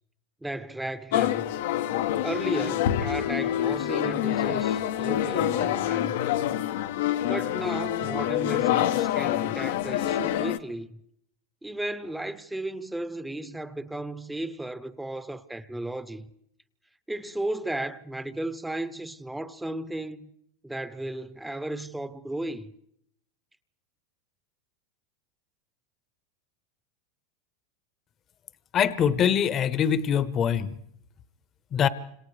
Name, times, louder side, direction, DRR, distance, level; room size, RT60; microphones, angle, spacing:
voice 1, 0.4-1.4 2.2-6.2 7.2-11.0 11.6-16.3 17.1-20.3 20.6-22.7, right 1 dB, 5° right, 0.8 m, -34 dB
sound 1, 1.1-10.6, left 12 dB, 75° left, 0.9 m, -26 dB
voice 2, 28.7-30.7 31.7-31.9, left 8 dB, 35° left, 0.9 m, -23 dB
30.0 x 27.0 x 3.3 m
supercardioid pair, 120°, 0 cm